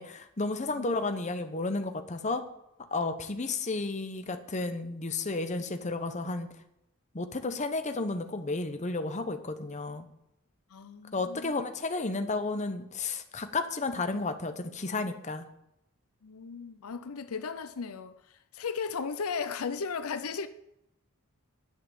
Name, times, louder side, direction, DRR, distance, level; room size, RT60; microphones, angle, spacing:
voice 1, 0.0-2.4 2.9-6.5 7.1-10.1 11.1-15.4, left 3 dB, 30° left, 0.9 m, -32 dB
voice 2, 10.7-11.6 16.2-20.5, left 5 dB, 80° left, 0.6 m, -36 dB
10.5 x 5.8 x 8.5 m
head